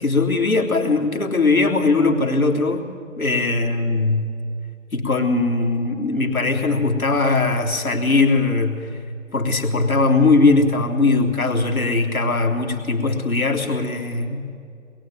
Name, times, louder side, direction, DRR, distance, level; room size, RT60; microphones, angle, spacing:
voice 1, 0.0-2.8 3.2-4.3 4.9-9.0 9.3-14.6, left 3 dB, 85° left, 1 dB, 3.6 m, -20 dB
23.0 x 22.0 x 9.2 m, 2.5 s
figure-of-eight pair, 140°, 41 cm